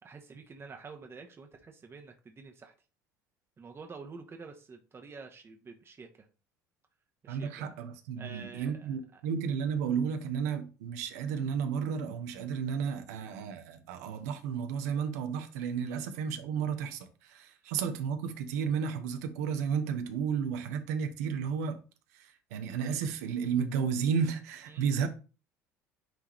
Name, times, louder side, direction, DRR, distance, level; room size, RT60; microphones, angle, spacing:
voice 1, 0.0-2.7 3.6-6.3 7.2-7.7 8.2-9.2 15.9-16.0 24.7-25.0, right 4 dB, 25° right, 1.0 m, -48 dB
voice 2, 7.3-21.8 22.1-25.1, right 6 dB, 65° right, 1.1 m, -32 dB
9.1 x 3.6 x 3.1 m
figure-of-eight pair, 65°, 9 cm